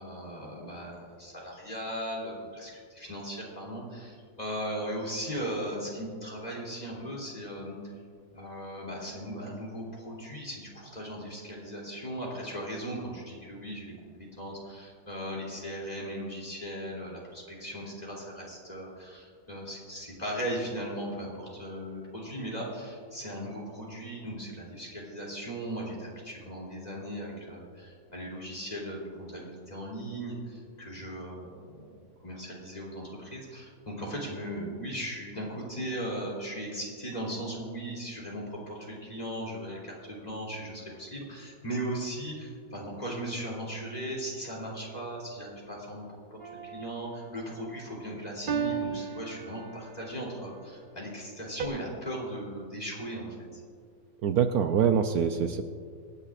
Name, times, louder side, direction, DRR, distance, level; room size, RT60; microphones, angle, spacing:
voice 1, 0.0-7.9 8.3-13.9 14.2-46.0 46.3-46.4 46.7-53.6, right 1 dB, 25° left, -4 dB, 3.1 m, -38 dB
sound 1, 46.4-47.1 48.5-50.1 51.6-51.7, right 7 dB, 40° right, 0.9 m, -34 dB
voice 2, 54.2-55.6, right 7 dB, 75° right, 7 dB, 1.0 m, -24 dB
26.0 x 9.9 x 2.5 m, 2.1 s
omnidirectional pair, 1.7 m